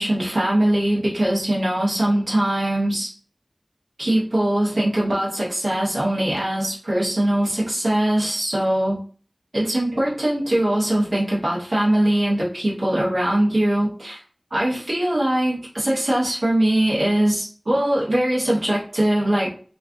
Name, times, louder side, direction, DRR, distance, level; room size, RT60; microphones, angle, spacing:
voice 1, 0.0-3.1 4.0-9.0 9.5-14.2 14.5-19.5, right 1 dB, 90° right, -7 dB, 0.8 m, -21 dB
2.4 x 2.3 x 2.4 m, 0.43 s
wide cardioid pair, 40°, 0 cm